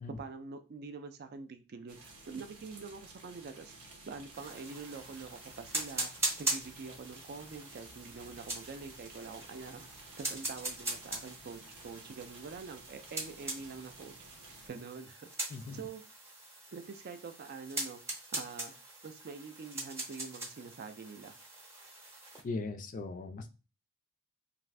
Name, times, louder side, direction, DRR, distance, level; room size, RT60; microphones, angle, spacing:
voice 1, 0.2-3.7 4.1-6.1 6.4-9.9 10.2-14.1 14.7-15.3 15.7-16.0 16.7-18.0 18.3-18.7 19.0-21.4, right 4 dB, 45° right, 8 dB, 0.4 m, -45 dB
sound 1, 1.9-14.7, right 2 dB, 85° right, 0.8 m, -54 dB
sound 2, 4.3-22.4, right 2 dB, 15° right, 0.7 m, -41 dB
voice 2, 22.4-23.5, left 3 dB, 40° left, 7 dB, 0.3 m, -39 dB
2.5 x 2.4 x 3.2 m, 0.31 s
head